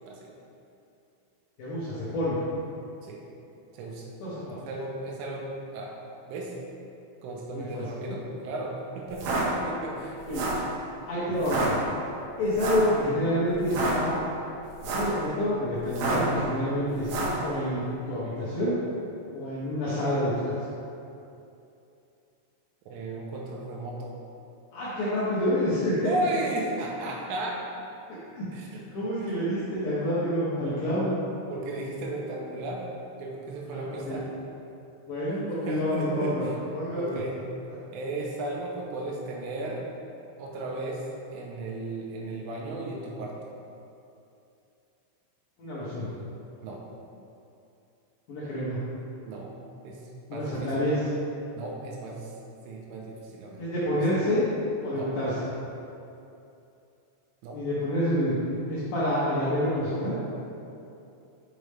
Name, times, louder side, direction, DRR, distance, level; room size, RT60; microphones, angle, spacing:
voice 1, 1.6-2.4 4.2-4.5 7.5-7.8 10.3-10.4 11.1-11.8 12.4-14.1 14.8-18.8 19.3-20.3 24.7-25.9 28.1-28.5 28.9-31.1 33.7-34.2 35.1-36.5 36.7-37.2 45.6-46.1 48.3-48.8 50.3-51.1 53.6-54.5 54.8-55.4 57.5-58.3 58.7-60.1, equal, 75° left, -11 dB, 2.1 m, -28 dB
voice 2, 3.7-4.1 4.7-5.9 6.2-6.5 7.2-10.2 22.9-24.1 26.0-27.6 28.5-28.8 30.5-31.0 31.5-32.9 33.2-34.3 35.7-36.5 37.0-37.4 37.9-39.9 40.4-41.1 41.3-43.4 46.6-46.8 49.2-49.5 49.8-50.0 50.3-50.9 51.6-52.3 52.7-53.6 54.0-54.3 54.9-55.1 57.4-57.6, right 2 dB, 85° right, -2 dB, 3.3 m, -35 dB
sound 1, 9.1-9.4 10.2-10.7 11.4-11.7 12.6-12.9 13.6-13.9 14.7-15.2 15.9-16.3 17.0-17.4, right 3 dB, 70° right, 2.9 m, -29 dB
6.4 x 6.1 x 3.4 m, 2.7 s
omnidirectional pair, 5.7 m